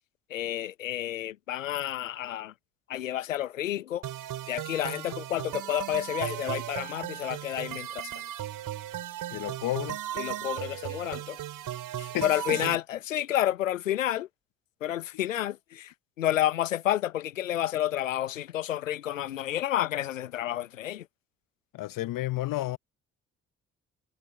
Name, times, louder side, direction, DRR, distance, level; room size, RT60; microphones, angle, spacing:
voice 1, 0.3-2.5 2.9-4.0 4.5-8.1 10.2-11.4 12.0-14.3 14.8-21.0, left 12 dB, 85° left, 1.1 m, -30 dB
sound 1, 4.0-12.7, right 12 dB, 60° right, 7.2 m, -36 dB
voice 2, 9.3-10.0 12.1-12.6 21.7-22.8, left 16 dB, 60° left, 1.3 m, -31 dB
figure-of-eight pair, 45°, 38 cm